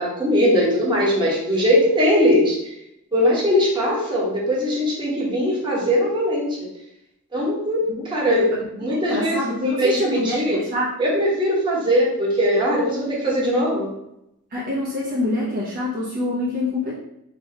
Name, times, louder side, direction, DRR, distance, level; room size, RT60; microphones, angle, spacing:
voice 1, 0.0-2.6 3.1-6.7 7.3-10.6 11.0-13.9, equal, 20° right, -5 dB, 1.2 m, -20 dB
voice 2, 8.0-8.3 8.9-10.9 14.5-17.0, left 1 dB, 40° right, -6 dB, 0.8 m, -25 dB
3.0 x 3.0 x 4.5 m, 0.82 s
head